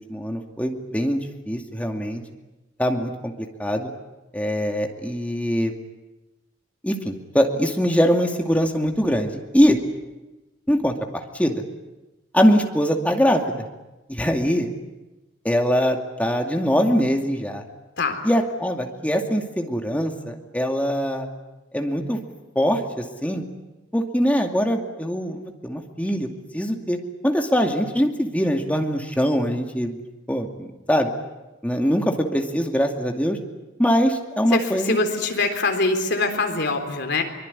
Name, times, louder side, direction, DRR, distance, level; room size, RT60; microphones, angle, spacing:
voice 1, 0.1-2.2 2.8-3.3 3.6-3.9 4.3-5.7 6.8-9.8 10.7-11.6 12.3-13.7 14.1-14.7 15.4-17.6 18.2-21.3 21.7-22.2 22.6-23.4 23.9-27.0 27.2-30.0 30.3-31.1 31.6-33.4 33.8-35.0, equal, 5° left, 3 dB, 2.4 m, -22 dB
voice 2, 34.5-37.2, left 3 dB, 60° left, 5 dB, 3.9 m, -23 dB
24.0 x 23.0 x 9.8 m, 1.0 s
head